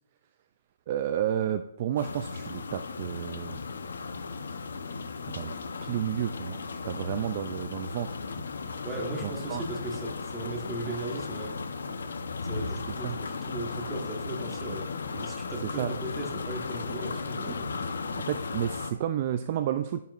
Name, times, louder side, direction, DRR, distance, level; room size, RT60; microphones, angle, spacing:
voice 1, 0.9-3.6 5.3-5.6 5.8-6.6 6.8-8.2 9.2-9.6 13.0-13.2 15.8-15.9 18.2-20.0, right 10 dB, 30° right, 9 dB, 0.3 m, -31 dB
sound 1, 2.0-18.9, left 4 dB, 90° left, 0.8 m, -36 dB
voice 2, 8.8-11.6 12.4-17.9, right 2 dB, 10° right, -1 dB, 1.3 m, -37 dB
11.0 x 9.2 x 2.5 m, 0.84 s
hypercardioid pair, 175°, 0 cm